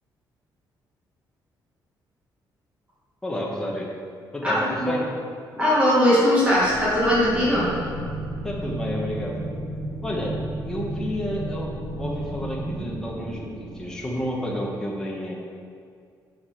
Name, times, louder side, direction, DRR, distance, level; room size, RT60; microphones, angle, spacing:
voice 1, 3.2-3.9 4.3-5.0 8.4-9.4 10.0-10.4 10.6-15.3, left 1 dB, 10° left, -3 dB, 1.1 m, -30 dB
voice 2, 4.4-4.9 5.5-7.7, equal, 15° right, -7 dB, 1.7 m, -20 dB
sound 1, 6.4-14.6, right 1 dB, 90° right, 1.9 m, -33 dB
6.9 x 5.7 x 5.7 m, 2.2 s
cardioid pair, 180°, 8 cm